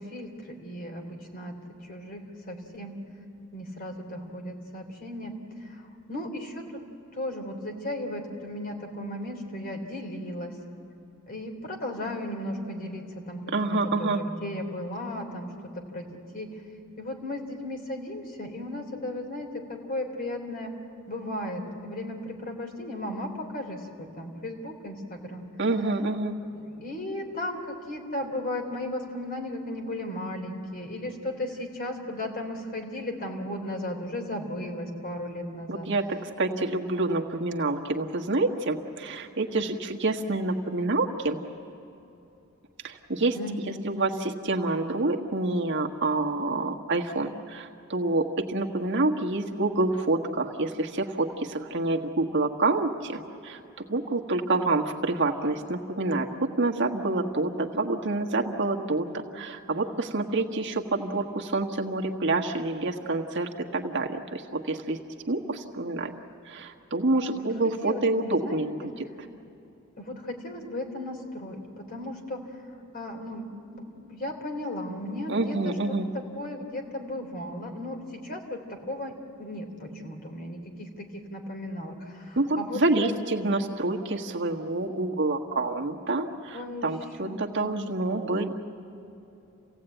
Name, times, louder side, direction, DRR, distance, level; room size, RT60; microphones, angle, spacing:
voice 1, 0.0-2.9 3.5-5.3 5.6-6.8 7.1-10.6 11.3-16.5 17.0-20.7 21.1-25.5 26.5-35.9 43.3-43.8 67.3-69.0 70.0-72.5 72.9-79.1 79.4-83.2 86.5-86.9 87.2-87.8, left 1 dB, 45° left, 2 dB, 3.3 m, -36 dB
voice 2, 13.5-14.2 25.6-26.3 35.7-36.0 36.4-41.4 42.8-43.4 43.8-53.6 53.9-65.0 65.3-66.1 66.5-68.8 75.3-76.1 82.4-88.5, right 2 dB, 55° right, 1 dB, 1.5 m, -27 dB
29.0 x 16.5 x 9.1 m, 2.8 s
head